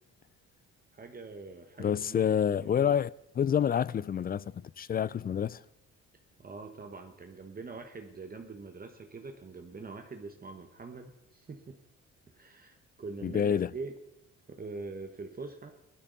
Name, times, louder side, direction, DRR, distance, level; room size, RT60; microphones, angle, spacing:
voice 1, 0.9-2.2 2.5-3.0 6.4-11.8 12.3-14.0 14.5-15.7, right 3 dB, 30° right, 1.2 m, -44 dB
voice 2, 1.8-3.1 3.4-5.6 13.2-13.7, left 8 dB, 30° left, 0.4 m, -28 dB
17.0 x 12.5 x 4.0 m
cardioid pair, 90°, 30 cm